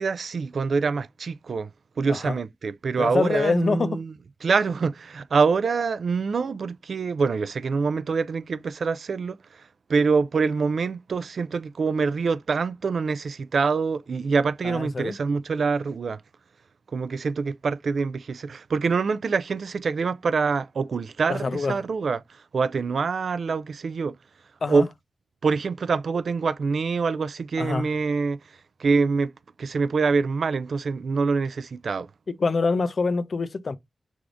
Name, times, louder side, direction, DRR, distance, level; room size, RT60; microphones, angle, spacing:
voice 1, 0.0-1.7 2.0-9.4 9.9-16.2 16.9-24.2 24.7-24.9 25.4-28.4 28.8-29.3 29.6-32.1, right 4 dB, 70° right, 0.3 m, -25 dB
voice 2, 3.0-4.0 14.6-15.1 21.3-21.8 24.6-24.9 27.6-27.9 32.3-33.8, left 4 dB, 55° left, 0.5 m, -25 dB
4.8 x 3.5 x 2.5 m
wide cardioid pair, 75°, 0 cm